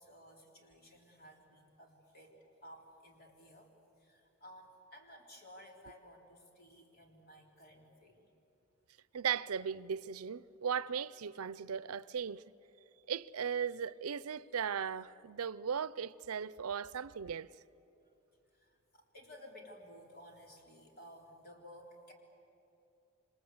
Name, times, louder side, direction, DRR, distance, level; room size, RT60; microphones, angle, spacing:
voice 1, 0.0-8.3 18.5-22.1, equal, 45° left, 3.7 m, -56 dB
voice 2, 9.1-12.4 13.1-17.5, right 7 dB, 85° right, 0.5 m, -37 dB
27.5 x 26.0 x 8.0 m
head